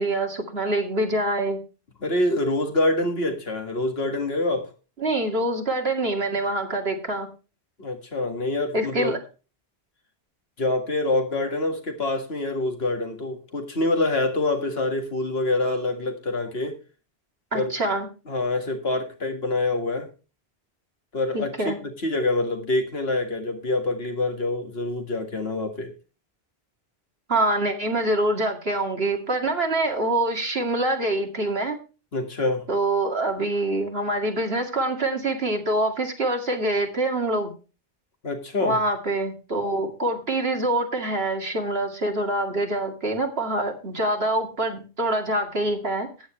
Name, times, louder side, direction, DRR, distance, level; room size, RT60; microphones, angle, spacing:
voice 1, 0.0-1.6 5.0-7.3 8.7-9.2 17.5-18.1 21.3-21.8 27.3-31.8 32.7-37.5 38.6-46.1, right 1 dB, 75° right, 3 dB, 2.5 m, -25 dB
voice 2, 2.0-4.7 7.8-9.1 10.6-16.8 17.5-17.7 18.3-20.1 21.1-25.9 32.1-32.7 38.2-38.8, left 2 dB, 80° left, 5 dB, 2.2 m, -26 dB
14.0 x 9.7 x 3.2 m, 0.32 s
omnidirectional pair, 1.0 m